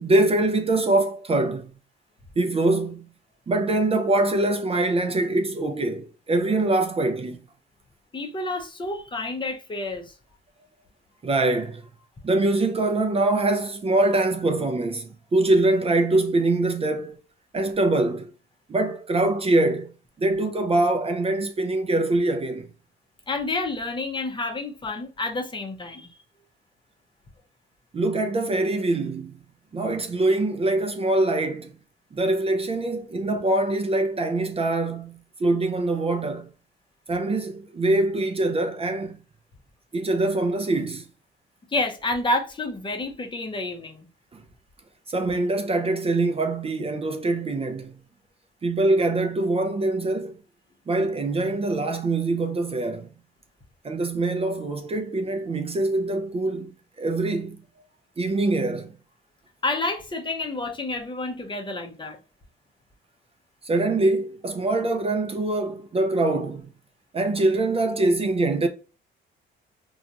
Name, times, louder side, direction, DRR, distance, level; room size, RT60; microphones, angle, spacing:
voice 1, 0.0-1.7 2.4-3.1 3.5-7.4 11.2-11.8 12.2-17.2 17.5-18.3 18.7-19.9 20.2-22.7 27.9-29.4 29.7-31.7 32.1-36.5 37.1-39.2 39.9-41.0 45.1-47.9 48.6-50.3 50.9-53.1 53.8-57.6 58.2-58.9 63.6-66.7 67.1-68.7, right 2 dB, 30° right, 0.4 m, -23 dB
voice 2, 8.1-10.1 23.3-26.1 41.7-44.1 59.6-62.2, left 2 dB, 25° left, 0.6 m, -29 dB
2.8 x 2.3 x 2.4 m
cardioid pair, 90°, 20 cm